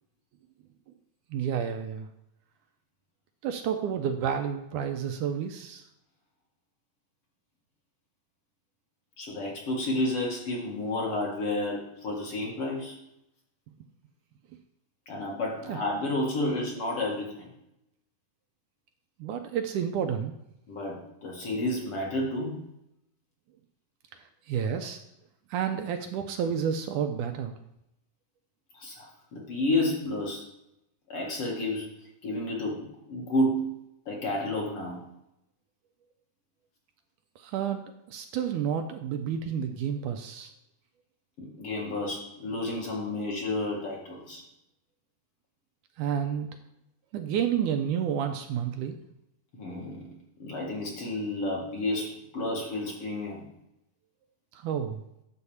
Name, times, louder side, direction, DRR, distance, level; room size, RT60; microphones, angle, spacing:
voice 1, 1.3-2.1 3.4-5.8 15.7-15.8 19.2-20.3 24.5-25.0 25.5-27.6 37.4-37.8 38.1-40.5 46.0-46.5 47.1-49.0 54.5-55.0, right 8 dB, 80° right, 6 dB, 2.0 m, -30 dB
voice 2, 9.2-13.0 15.1-17.5 20.7-22.6 24.7-24.9 28.7-30.4 31.1-32.0 32.2-33.7 34.1-35.0 41.4-44.4 49.5-50.1 50.4-53.4, left 1 dB, 45° left, -3 dB, 2.3 m, -31 dB
9.9 x 4.4 x 7.0 m, 0.80 s
omnidirectional pair, 3.9 m